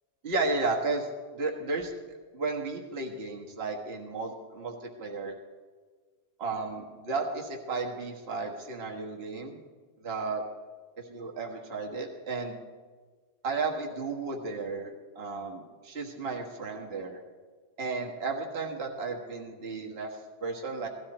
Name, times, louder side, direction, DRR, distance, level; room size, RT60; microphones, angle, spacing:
voice 1, 0.2-1.1 1.3-1.9 2.3-5.4 6.4-9.6 10.0-10.4 11.0-12.6 13.4-17.2 17.8-20.9, right 3 dB, 40° right, 0 dB, 1.8 m, -33 dB
17.5 x 14.0 x 4.3 m, 1.5 s
omnidirectional pair, 1.7 m